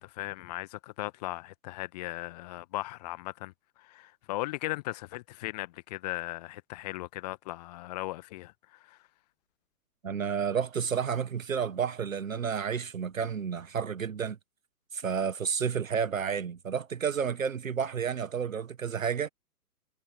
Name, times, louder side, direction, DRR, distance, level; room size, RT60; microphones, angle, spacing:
voice 1, 0.0-3.5 3.8-9.0, left 19 dB, 25° left, 1.6 m, -37 dB
voice 2, 10.0-14.4 14.9-19.3, right 7 dB, 55° right, 1.7 m, -31 dB
figure-of-eight pair, 125°, 46 cm